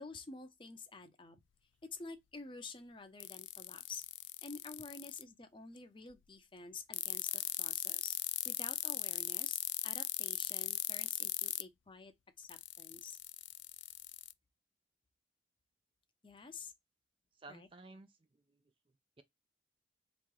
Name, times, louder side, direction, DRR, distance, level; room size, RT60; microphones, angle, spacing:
voice 1, 0.0-1.4 1.8-4.0 4.4-8.2 8.4-13.2 16.2-16.7 17.5-17.7, left 4 dB, 25° left, 0.6 m, -50 dB
sound 1, 3.2-5.2 6.9-11.6 12.5-14.3, left 18 dB, 75° left, 0.3 m, -38 dB
voice 2, 17.3-18.6 19.2-19.3, right 2 dB, 25° right, 0.4 m, -55 dB
3.7 x 3.0 x 3.7 m
head